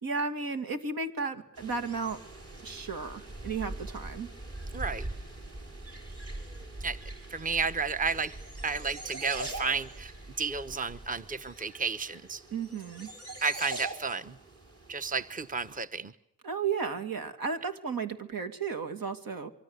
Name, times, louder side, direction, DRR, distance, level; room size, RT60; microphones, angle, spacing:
voice 1, 0.0-2.2 2.6-4.3 12.5-13.1 16.4-19.5, right 5 dB, 75° right, 7 dB, 2.8 m, -34 dB
sound 1, 1.6-15.8, right 2 dB, 45° right, 6.7 m, -42 dB
voice 2, 4.7-5.1 6.8-7.0 7.3-8.3 8.6-12.4 13.4-14.4 14.9-16.1, right 4 dB, 25° right, 11 dB, 1.0 m, -32 dB
25.5 x 24.5 x 8.3 m, 0.75 s
wide cardioid pair, 100°, 34 cm